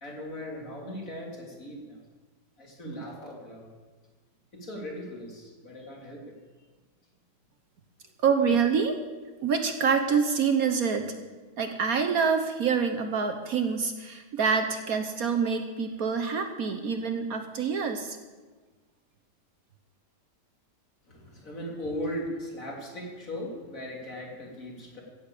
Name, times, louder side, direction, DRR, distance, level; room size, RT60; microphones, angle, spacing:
voice 1, 0.0-2.0 2.6-3.7 4.5-6.3 21.1-25.0, equal, 50° left, -2 dB, 3.4 m, -38 dB
voice 2, 8.2-9.0 9.4-11.1 11.6-18.2, right 6 dB, 60° right, 7 dB, 1.3 m, -26 dB
15.5 x 7.0 x 8.3 m, 1.3 s
omnidirectional pair, 1.9 m